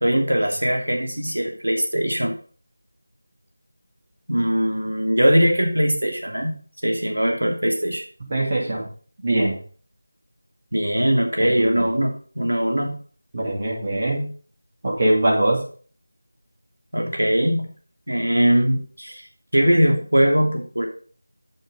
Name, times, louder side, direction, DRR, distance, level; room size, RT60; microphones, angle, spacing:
voice 1, 0.0-2.3 4.3-6.6 6.8-8.0 10.7-12.9 16.9-17.7 18.1-19.2 19.5-20.9, equal, 90° right, 2 dB, 2.8 m, -21 dB
voice 2, 8.3-8.8 9.2-9.5 11.4-11.7 13.3-14.3 14.8-15.6, right 1 dB, 35° right, -3 dB, 2.6 m, -22 dB
8.7 x 6.3 x 5.0 m, 0.42 s
figure-of-eight pair, 170°, 0 cm